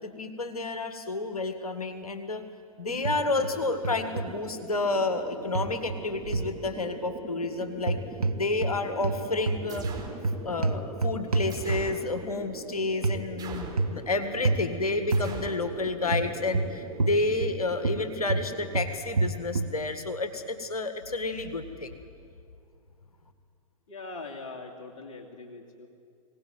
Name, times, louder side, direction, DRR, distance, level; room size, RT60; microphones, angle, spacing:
voice 1, 0.0-2.4 2.8-8.0 8.3-9.9 10.4-22.0, left 3 dB, 85° left, 8 dB, 1.7 m, -30 dB
sound 1, 2.8-18.7, right 2 dB, 45° right, 7.1 m, -42 dB
sound 2, 3.0-3.5 3.8-4.3 5.5-6.6 7.8-8.8 9.0-12.1 13.0-13.2 13.8-14.1 14.4-14.7 15.1-15.3 16.1-17.6 17.8-19.8, right 3 dB, 90° right, 1.0 m, -28 dB
sound 3, 9.7-10.2 11.5-12.0 13.4-13.9 15.1-15.6, right 6 dB, 20° right, 4.1 m, -40 dB
voice 2, 23.9-25.9, left 3 dB, 60° left, 1 dB, 2.6 m, -42 dB
23.0 x 18.5 x 9.4 m, 2.4 s
figure-of-eight pair, 105°, 18 cm